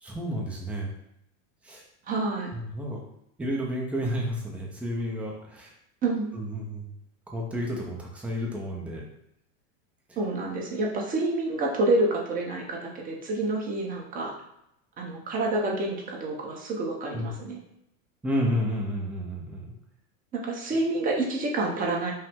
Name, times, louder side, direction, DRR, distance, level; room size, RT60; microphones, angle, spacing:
voice 1, 0.0-0.9 1.6-1.8 2.5-3.0 3.4-5.7 6.3-6.9 7.3-9.0 17.1-17.3 18.2-19.8, equal, 5° right, -2 dB, 0.4 m, -31 dB
voice 2, 2.1-2.5 6.0-6.3 10.2-14.3 15.0-17.6 20.3-22.1, right 2 dB, 20° right, -1 dB, 0.8 m, -28 dB
5.5 x 2.1 x 3.5 m, 0.78 s
supercardioid pair, 135°, 40 cm